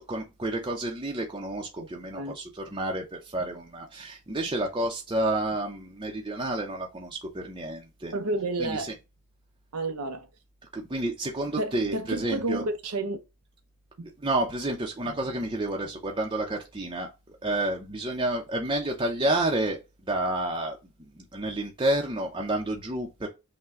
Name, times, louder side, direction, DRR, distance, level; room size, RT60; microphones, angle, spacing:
voice 1, 0.0-2.4 2.7-8.1 8.6-8.8 10.7-12.6 14.2-17.1 17.4-19.8 20.1-20.8 21.2-23.3, right 1 dB, 20° right, 0.6 m, -30 dB
voice 2, 8.1-8.9 9.7-10.3 11.6-13.2 14.0-14.1 15.0-15.2, right 2 dB, 85° right, 0.7 m, -31 dB
5.6 x 2.2 x 3.6 m
head